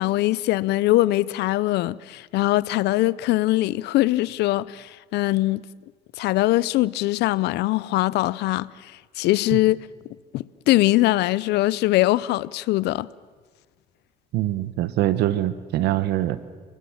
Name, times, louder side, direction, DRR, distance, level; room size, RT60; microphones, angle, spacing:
voice 1, 0.0-5.6 6.2-9.8 10.3-13.1, left 17 dB, 80° left, 0.6 m, -22 dB
voice 2, 14.3-16.4, right 13 dB, 85° right, 1.1 m, -23 dB
29.5 x 20.0 x 7.3 m
cardioid pair, 110°, 17 cm